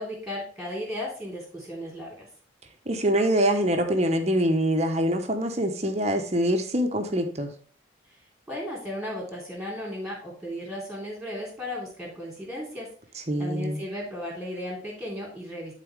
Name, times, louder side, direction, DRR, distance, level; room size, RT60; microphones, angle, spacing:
voice 1, 0.0-2.3 8.5-12.9 13.4-15.7, left 1 dB, 5° right, -3 dB, 3.3 m, -35 dB
voice 2, 2.9-7.5 13.3-13.8, right 1 dB, 35° right, 5 dB, 1.0 m, -24 dB
12.0 x 4.2 x 3.4 m, 0.43 s
head